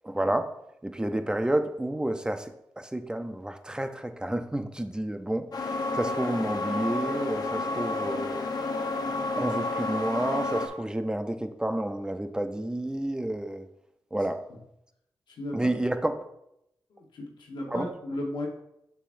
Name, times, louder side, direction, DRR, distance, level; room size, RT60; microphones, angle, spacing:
voice 1, 0.0-0.5 0.8-8.4 9.4-13.7 14.1-14.4 15.5-16.2 17.7-17.9, right 1 dB, 10° right, 8 dB, 0.5 m, -30 dB
sound 1, 5.5-10.7, left 2 dB, 55° left, 0.8 m, -30 dB
voice 2, 16.9-18.5, left 1 dB, 80° left, 0 dB, 1.2 m, -35 dB
6.9 x 5.7 x 2.6 m, 0.81 s
cardioid pair, 75°, 8 cm